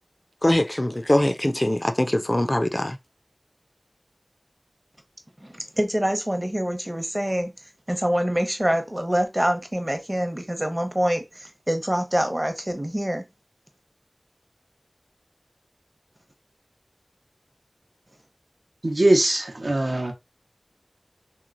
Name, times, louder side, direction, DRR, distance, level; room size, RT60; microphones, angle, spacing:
voice 1, 0.4-3.0, left 1 dB, 35° left, 0.3 m, -22 dB
voice 2, 5.4-7.5 7.9-13.2, equal, 20° right, 0.7 m, -25 dB
voice 3, 18.8-20.1, right 1 dB, 80° right, 0.7 m, -21 dB
3.0 x 2.9 x 2.4 m
wide cardioid pair, 45°, 0 cm